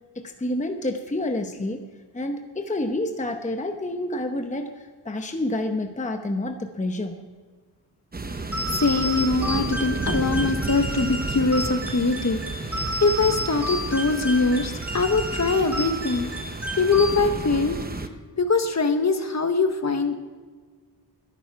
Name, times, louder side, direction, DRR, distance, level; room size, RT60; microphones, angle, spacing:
voice 1, 0.1-1.9 2.1-7.2, left 1 dB, 20° left, 5 dB, 0.9 m, -29 dB
sound 1, 8.1-18.1, right 3 dB, 20° right, 0.8 m, -32 dB
sound 2, 8.5-17.6, equal, 5° right, 2.0 m, -32 dB
voice 2, 8.7-16.3 16.8-17.8 18.4-20.1, left 3 dB, 40° left, 7 dB, 1.2 m, -23 dB
22.0 x 11.0 x 4.7 m, 1.5 s
wide cardioid pair, 135°, 41 cm